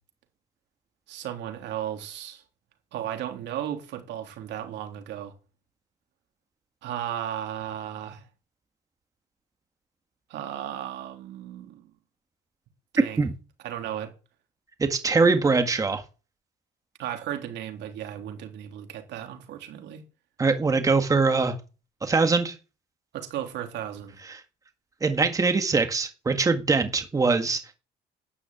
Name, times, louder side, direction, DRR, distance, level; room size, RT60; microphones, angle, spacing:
voice 1, 1.1-2.4 2.9-5.3 6.8-8.2 10.3-11.9 12.9-13.2 13.6-14.1 17.0-20.0 23.1-24.2, right 11 dB, 80° right, 3.6 m, -35 dB
voice 2, 14.8-16.0 20.4-21.6 22.0-22.6 24.2-24.4 25.0-27.8, right 4 dB, 20° right, 1.7 m, -23 dB
12.5 x 10.0 x 9.0 m
cardioid pair, 150°, 18 cm